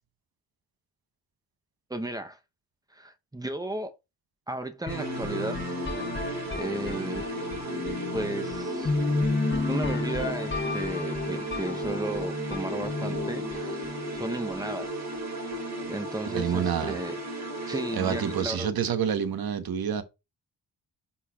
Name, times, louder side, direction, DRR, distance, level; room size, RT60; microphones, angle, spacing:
voice 1, 1.9-2.4 2.9-3.9 4.5-5.6 6.5-7.3 8.1-8.9 9.7-14.9 15.8-17.2 17.7-18.7, right 1 dB, 10° right, 0.6 m, -34 dB
sound 1, 4.9-14.7, left 3 dB, 30° left, 1.1 m, -32 dB
sound 2, 4.9-18.4, right 1 dB, 45° right, 1.8 m, -35 dB
voice 2, 16.3-17.0 17.9-20.0, right 8 dB, 70° right, 0.9 m, -28 dB
9.6 x 4.3 x 2.3 m
wide cardioid pair, 140°, 38 cm